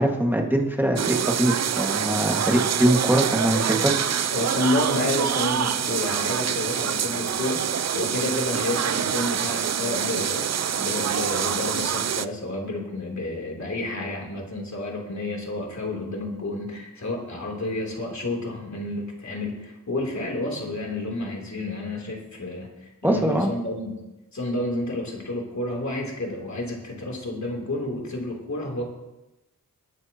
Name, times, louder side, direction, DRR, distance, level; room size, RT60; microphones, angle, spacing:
voice 1, 0.0-4.2 23.0-23.5, right 1 dB, 5° right, 1 dB, 1.8 m, -22 dB
sound 1, 1.0-12.3, right 8 dB, 55° right, 0.4 m, -26 dB
voice 2, 4.3-7.6 7.9-24.0 24.3-28.8, left 2 dB, 55° left, -1 dB, 3.2 m, -30 dB
21.5 x 9.5 x 2.9 m, 1.0 s
wide cardioid pair, 95°, 33 cm